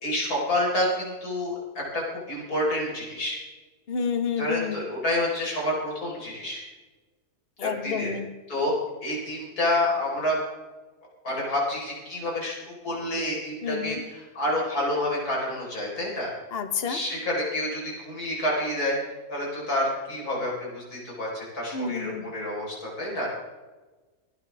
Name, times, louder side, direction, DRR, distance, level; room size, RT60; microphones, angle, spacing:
voice 1, 0.0-3.4 4.4-6.6 7.6-8.1 8.5-8.7 9.0-10.4 11.2-12.6 12.8-16.3 16.8-19.0 19.3-23.3, left 1 dB, 90° left, -4 dB, 5.1 m, -28 dB
voice 2, 3.9-4.8 7.6-8.3 13.6-14.0 16.5-17.0 21.7-22.3, left 6 dB, 45° left, 8 dB, 1.3 m, -29 dB
24.5 x 9.5 x 3.5 m, 1.2 s
omnidirectional pair, 1.6 m